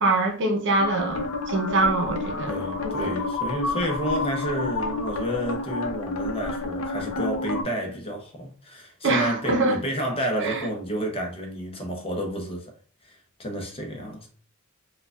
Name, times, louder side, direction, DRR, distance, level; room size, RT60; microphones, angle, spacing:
voice 1, 0.0-3.1 9.0-9.8 10.4-10.7, right 2 dB, 60° right, 0.7 m, -24 dB
sound 1, 0.8-7.6, left 3 dB, 80° left, 0.7 m, -30 dB
voice 2, 2.5-12.7 13.0-14.3, equal, 25° left, 0.8 m, -30 dB
4.5 x 2.3 x 2.3 m
head